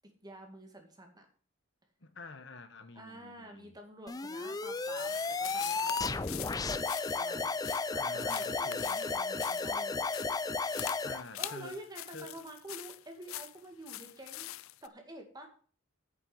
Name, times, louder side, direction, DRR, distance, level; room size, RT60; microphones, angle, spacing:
voice 1, 0.2-1.3 2.9-6.6 7.1-7.5 8.1-10.0 11.4-14.5 14.8-15.5, right 1 dB, 20° right, 2.1 m, -48 dB
voice 2, 2.0-3.8 7.9-9.0 11.0-11.8 12.1-12.4, left 3 dB, 60° left, 1.3 m, -48 dB
sound 1, 4.1-11.2, left 4 dB, 15° left, 0.4 m, -33 dB
sound 2, 4.8-14.9, left 15 dB, 80° left, 0.5 m, -44 dB
9.4 x 6.8 x 7.7 m
head